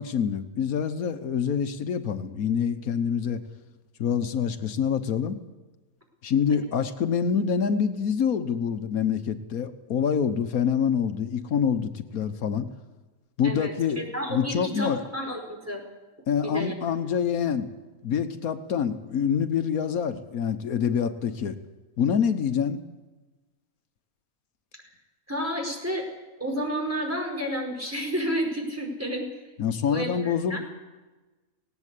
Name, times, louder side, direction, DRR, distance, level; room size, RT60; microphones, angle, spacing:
voice 1, 0.0-3.4 4.0-5.4 6.2-12.7 13.4-14.0 14.3-15.0 16.3-17.7 18.0-21.6 22.0-22.8 29.6-30.6, left 7 dB, 90° left, 9 dB, 1.5 m, -26 dB
voice 2, 13.4-15.8 16.4-16.7 25.3-26.0 26.4-29.2 29.9-30.6, equal, 10° right, 0 dB, 5.0 m, -31 dB
18.5 x 18.0 x 8.3 m, 1.2 s
omnidirectional pair, 1.5 m